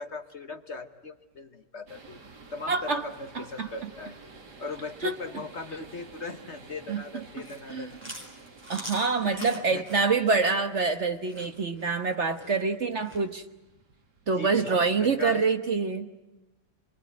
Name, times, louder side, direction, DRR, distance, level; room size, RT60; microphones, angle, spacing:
voice 1, 0.0-2.2 2.5-4.2 4.6-8.0 9.0-9.8 14.4-14.6 15.0-15.5, left 3 dB, 45° left, 8 dB, 1.3 m, -39 dB
sound 1, 1.9-15.8, right 4 dB, 70° right, 2.8 m, -52 dB
voice 2, 2.7-3.0 3.3-3.7 5.0-5.2 6.9-7.0 7.7-7.9 8.7-13.4 14.3-16.1, right 4 dB, 45° right, 7 dB, 1.3 m, -26 dB
Chewing mastication, 7.2-13.2, equal, 5° right, 4.2 m, -44 dB
27.5 x 22.0 x 9.4 m, 1.0 s
omnidirectional pair, 1.9 m